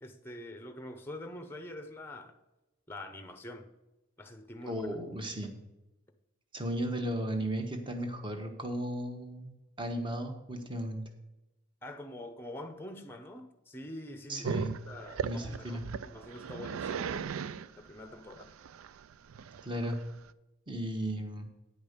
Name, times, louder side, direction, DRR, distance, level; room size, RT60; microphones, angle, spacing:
voice 1, 0.0-2.3 2.9-3.7 4.2-4.9 11.8-14.5 14.9-17.1 17.8-18.5, left 1 dB, 10° left, 0.7 m, -45 dB
voice 2, 4.7-5.5 6.5-11.0 14.3-14.7 15.2-15.8 19.6-20.0 20.7-21.5, right 1 dB, 25° right, 1.2 m, -35 dB
Growling, 14.4-20.3, right 7 dB, 85° right, 0.4 m, -38 dB
9.5 x 5.3 x 6.6 m
head